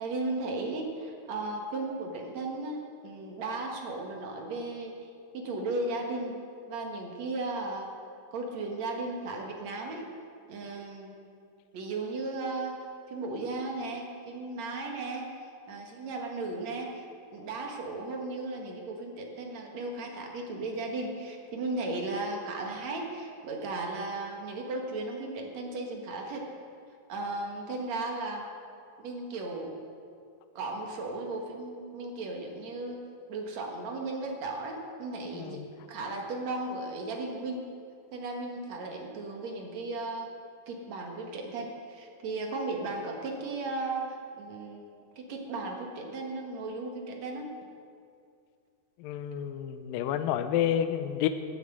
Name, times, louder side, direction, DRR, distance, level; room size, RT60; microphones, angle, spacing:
voice 1, 0.0-6.3 6.7-7.9 8.3-10.1 10.5-11.3 11.7-12.8 13.1-15.3 15.7-26.5 27.1-28.5 29.0-29.8 30.6-33.0 33.3-35.6 35.9-37.6 38.1-40.3 40.7-44.9 45.2-47.5, right 2 dB, 55° right, 1 dB, 2.2 m, -35 dB
voice 2, 35.3-35.7 49.0-51.3, left 10 dB, 80° left, 9 dB, 2.1 m, -30 dB
15.5 x 9.3 x 7.8 m, 2.4 s
omnidirectional pair, 4.9 m